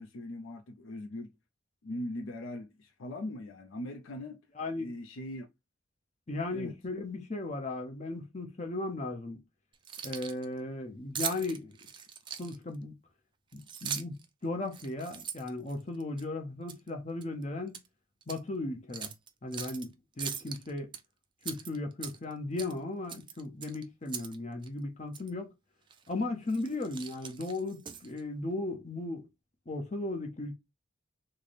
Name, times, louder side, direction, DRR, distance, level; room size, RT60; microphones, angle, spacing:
voice 1, 0.0-1.3 1.8-4.4 4.7-5.5 6.5-6.7, left 1 dB, 70° left, 0.5 m, -40 dB
voice 2, 4.6-4.9 6.3-9.4 10.0-11.8 12.4-12.9 13.5-14.2 14.4-17.8 18.3-19.1 19.4-20.9 21.4-25.5 26.1-29.3 29.7-30.6, left 2 dB, 35° left, 0.7 m, -36 dB
Keys jangling, 9.7-10.4 11.1-12.7 13.5-14.2 14.7-16.2 16.7-16.9 17.2-17.9 18.2-18.4 18.9-19.8 20.2-21.0 21.4-22.3 22.6-22.8 23.1-24.4 24.6-24.7 25.1-25.3 25.9-26.1 26.5-28.2, right 8 dB, 25° right, 0.3 m, -40 dB
3.3 x 2.0 x 4.0 m
head